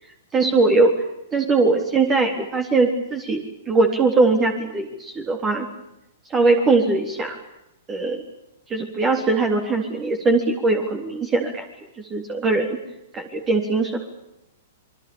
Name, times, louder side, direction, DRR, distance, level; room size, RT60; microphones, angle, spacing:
voice 1, 0.3-0.9 1.3-5.7 6.3-7.4 7.9-8.2 8.7-11.6 12.0-12.8 13.1-14.0, right 3 dB, 25° right, 3 dB, 3.7 m, -20 dB
27.5 x 23.5 x 7.2 m, 0.86 s
figure-of-eight pair, 110°, 0 cm